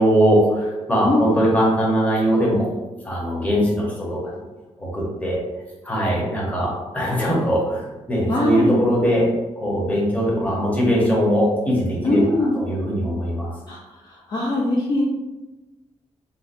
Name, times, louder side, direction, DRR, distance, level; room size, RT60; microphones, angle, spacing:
voice 1, 0.0-2.6 3.0-4.3 4.8-5.4 5.8-9.3 9.6-13.5, equal, 10° left, -5 dB, 0.8 m, -21 dB
voice 2, 1.0-1.4 8.3-8.7 12.0-12.6 13.7-13.8 14.1-15.0, left 2 dB, 35° left, -4 dB, 0.4 m, -21 dB
3.9 x 2.1 x 2.5 m, 1.1 s
wide cardioid pair, 155°, 12 cm